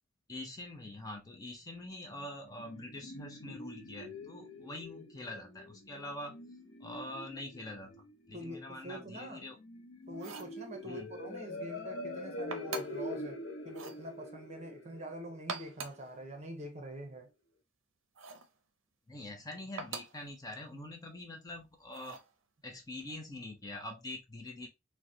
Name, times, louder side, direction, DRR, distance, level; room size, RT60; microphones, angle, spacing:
voice 1, 0.3-6.4 6.8-7.9 8.3-9.6 10.8-11.1 19.1-22.2 22.6-24.7, left 1 dB, 20° left, 0.5 m, -44 dB
sound 1, 2.1-16.1, left 1 dB, 75° left, 0.6 m, -45 dB
voice 2, 8.3-9.5 10.1-17.3, right 1 dB, 35° right, 0.8 m, -45 dB
sound 2, 10.1-10.6 12.5-13.1 13.7-14.0 15.3-16.1 18.2-18.5 19.8-20.2 21.9-22.3, right 4 dB, 70° right, 0.5 m, -43 dB
3.7 x 2.2 x 2.7 m
head